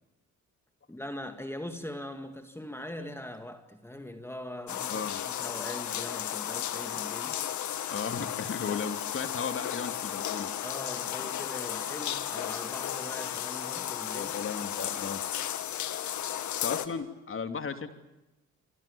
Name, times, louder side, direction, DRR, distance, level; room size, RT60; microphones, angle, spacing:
voice 1, 0.9-7.4 10.6-14.3, left 1 dB, 10° left, 2.0 m, -41 dB
sound 1, 4.7-16.9, left 11 dB, 75° left, 2.0 m, -34 dB
voice 2, 4.9-5.2 7.9-10.5 14.1-15.2 16.2-17.9, left 5 dB, 45° left, 3.0 m, -36 dB
28.0 x 26.0 x 7.1 m
cardioid pair, 90°, 30 cm